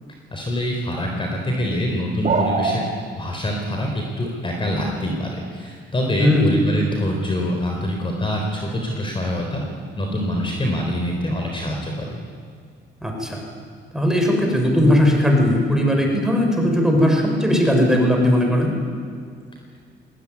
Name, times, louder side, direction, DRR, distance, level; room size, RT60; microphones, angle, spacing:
voice 1, 0.3-9.6 10.0-12.2, equal, 25° left, 1 dB, 4.1 m, -25 dB
sound 1, 2.2-2.8, right 4 dB, 40° right, 3.3 m, -21 dB
voice 2, 13.0-13.4 13.9-18.7, left 1 dB, 5° right, 1 dB, 6.5 m, -18 dB
20.5 x 17.5 x 9.7 m, 2.1 s
cardioid pair, 90°, 20 cm